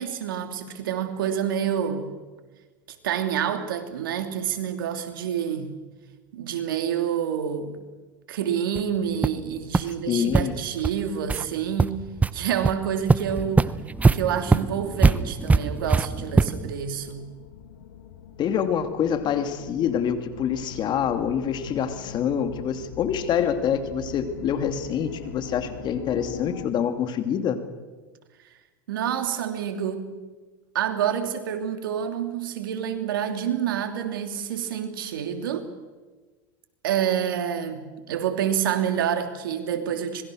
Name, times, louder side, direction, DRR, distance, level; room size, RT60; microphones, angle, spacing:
voice 1, 0.0-2.1 3.0-5.7 6.3-7.8 8.3-12.0 12.3-13.7 14.1-17.3 28.9-30.1 30.7-35.7 36.8-40.2, right 9 dB, 85° right, 6 dB, 3.1 m, -28 dB
sound 1, 8.7-8.8 9.2-9.4 9.7-9.8 10.3-10.4 10.8-10.9 11.3-11.4 11.8-12.3 12.6-12.7 13.1-16.7, right 4 dB, 15° right, 0.8 m, -21 dB
voice 2, 10.1-10.6 18.4-27.6, left 8 dB, 40° left, 8 dB, 2.6 m, -26 dB
sound 2, 13.0-26.7, left 8 dB, 85° left, 1.9 m, -42 dB
26.0 x 21.5 x 6.4 m, 1.3 s
hypercardioid pair, 105°, 11 cm